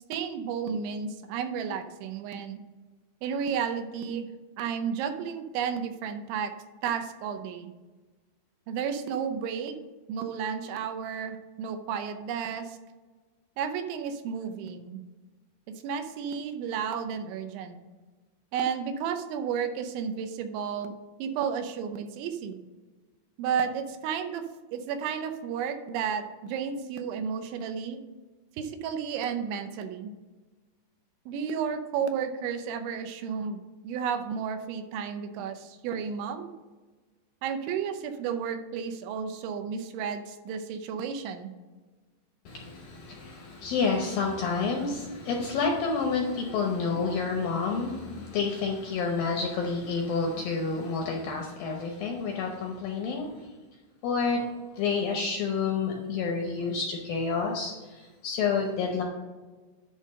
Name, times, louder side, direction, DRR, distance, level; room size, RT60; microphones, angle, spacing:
voice 1, 0.1-2.6 3.2-4.3 4.6-6.5 6.8-7.7 8.7-9.7 10.1-12.8 13.6-15.0 15.8-17.8 18.5-20.9 21.2-22.6 23.4-24.4 24.7-28.0 28.6-30.1 31.3-36.5 37.4-41.5, right 7 dB, 90° right, 7 dB, 3.2 m, -32 dB
voice 2, 42.5-53.3 54.0-54.5 54.8-59.0, left 4 dB, 75° left, 1 dB, 2.1 m, -29 dB
11.0 x 3.8 x 6.4 m, 1.3 s
omnidirectional pair, 5.2 m